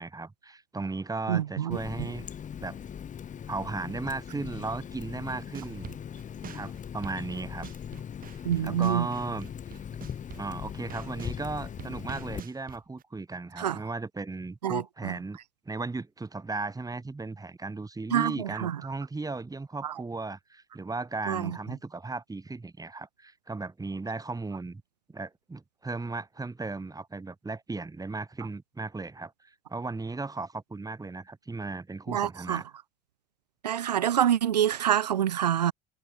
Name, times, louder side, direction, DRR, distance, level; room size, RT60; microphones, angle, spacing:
voice 1, 0.0-2.3 2.6-2.8 3.5-5.9 6.5-7.7 8.6-9.5 10.4-15.4 15.7-24.8 25.1-32.6, right 3 dB, 15° right, 7.8 m, -36 dB
voice 2, 1.3-2.1 8.4-9.1 13.6-13.8 14.6-15.1 18.1-18.8 19.8-19.9 21.3-21.6 32.1-32.6 33.6-35.7, right 10 dB, 85° right, 1.1 m, -27 dB
Water tap faucet, 1.7-12.4, left 8 dB, 40° left, 3.4 m, -40 dB
sound 1, 5.3-11.4 11.8-13.0, right 9 dB, 45° right, 5.6 m, -45 dB
hypercardioid pair, 65°, 20 cm